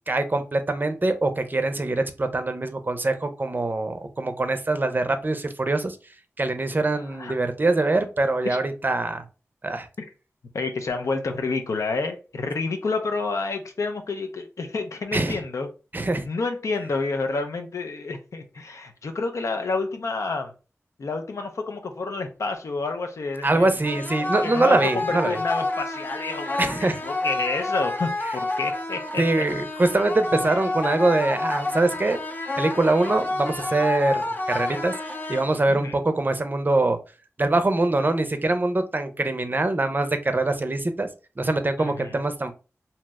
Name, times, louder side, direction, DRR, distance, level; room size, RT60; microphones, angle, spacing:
voice 1, 0.1-6.0 6.4-9.2 9.6-9.9 15.1-15.4 15.9-16.3 23.4-25.4 26.6-27.0 29.2-32.2 32.6-34.9 35.3-37.0 37.4-41.1 41.4-42.5, right 2 dB, 40° right, 0.5 m, -23 dB
voice 2, 10.5-15.7 16.0-20.5 21.0-29.4 35.7-36.0 41.8-42.2, left 3 dB, 80° left, 0.5 m, -29 dB
sound 1, 23.8-35.8, left 2 dB, 40° left, 0.7 m, -29 dB
2.7 x 2.0 x 3.4 m
cardioid pair, 40°, 5 cm